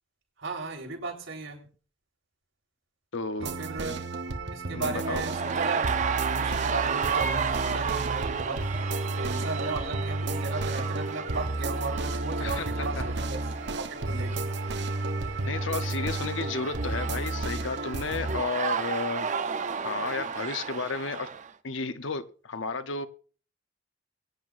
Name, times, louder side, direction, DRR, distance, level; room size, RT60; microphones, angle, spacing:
voice 1, 0.4-1.6 3.4-4.1 4.5-5.9 6.2-8.7 9.2-13.4 13.7-14.5, right 3 dB, 75° right, -1 dB, 4.0 m, -35 dB
voice 2, 3.1-3.5 3.9-4.0 4.7-5.2 12.4-13.1 15.5-19.3 19.8-21.3 21.6-23.1, left 4 dB, 75° left, 11 dB, 0.8 m, -33 dB
sound 1, 3.4-18.4, right 2 dB, 60° right, 1.0 m, -32 dB
sound 2, 4.9-21.5, right 6 dB, 40° right, 0.5 m, -33 dB
22.5 x 9.2 x 2.5 m, 0.40 s
head